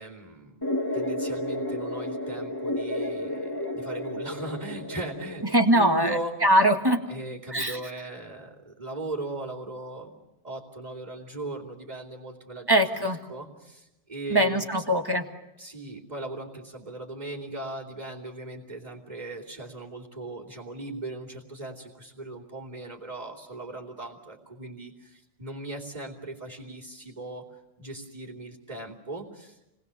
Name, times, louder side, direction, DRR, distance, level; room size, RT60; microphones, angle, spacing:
voice 1, 0.0-5.4 5.7-6.3 7.1-10.2 10.4-12.7 13.3-14.7 15.6-27.5 27.8-29.6, right 2 dB, 40° right, -7 dB, 3.1 m, -38 dB
sound 1, 0.6-5.6, left 1 dB, 20° left, 1.9 m, -32 dB
voice 2, 5.5-7.0 7.5-7.8 12.7-13.2 14.3-15.3, right 1 dB, 20° right, 4 dB, 1.9 m, -22 dB
29.5 x 20.5 x 7.0 m, 0.95 s
omnidirectional pair, 1.0 m